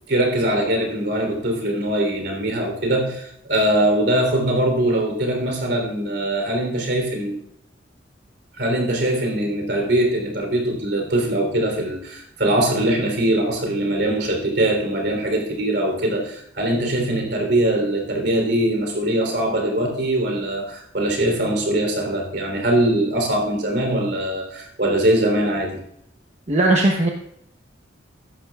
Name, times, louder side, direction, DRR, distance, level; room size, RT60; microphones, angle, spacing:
voice 1, 0.1-7.4 8.6-25.8, right 1 dB, 65° right, 3 dB, 3.5 m, -22 dB
voice 2, 26.5-27.1, right 2 dB, 35° right, 1 dB, 1.0 m, -17 dB
15.5 x 11.5 x 2.4 m, 0.75 s
head